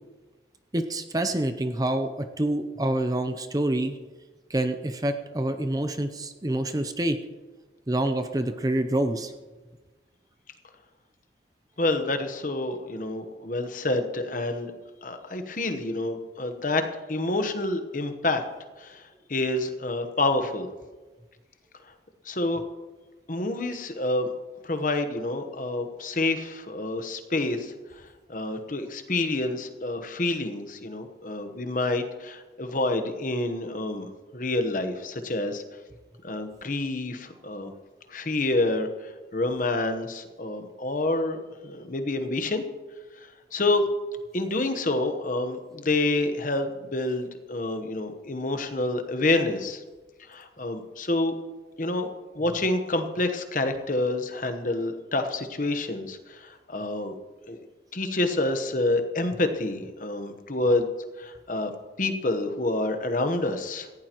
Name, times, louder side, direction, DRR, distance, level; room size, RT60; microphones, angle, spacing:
voice 1, 0.7-4.0 4.5-7.2 7.9-9.3, right 1 dB, 20° right, 8 dB, 0.6 m, -27 dB
voice 2, 11.8-14.7 15.0-18.4 18.8-20.7 22.2-22.6 23.3-24.3 24.6-35.6 36.2-37.7 38.1-42.6 43.2-43.9 44.3-49.8 50.3-51.3 51.8-52.1 52.3-57.1 57.5-57.6 57.9-60.9 61.2-61.7 62.0-63.9, left 2 dB, 45° left, 7 dB, 1.1 m, -28 dB
18.0 x 15.5 x 3.0 m, 1.3 s
head